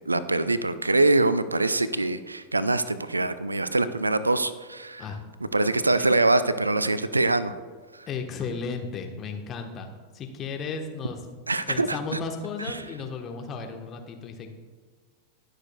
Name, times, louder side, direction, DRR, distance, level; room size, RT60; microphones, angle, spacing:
voice 1, 0.1-5.0 5.5-7.6 7.9-8.1 11.5-12.2 12.6-12.8, right 2 dB, 80° right, 15 dB, 0.4 m, -24 dB
voice 2, 8.1-9.9 10.1-11.2 11.7-14.5, left 5 dB, 30° left, 4 dB, 1.2 m, -34 dB
19.5 x 6.6 x 2.3 m, 1.5 s
figure-of-eight pair, 90°, 0 cm